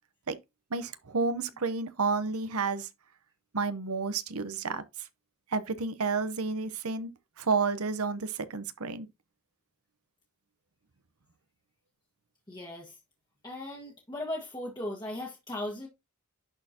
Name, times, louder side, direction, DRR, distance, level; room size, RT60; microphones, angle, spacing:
voice 1, 0.7-2.9 3.5-4.8 5.5-7.1 7.4-9.1, right 4 dB, 80° right, 0.9 m, -30 dB
voice 2, 12.5-13.0 13.4-15.9, left 1 dB, 20° left, 1.5 m, -37 dB
11.0 x 4.4 x 2.9 m
head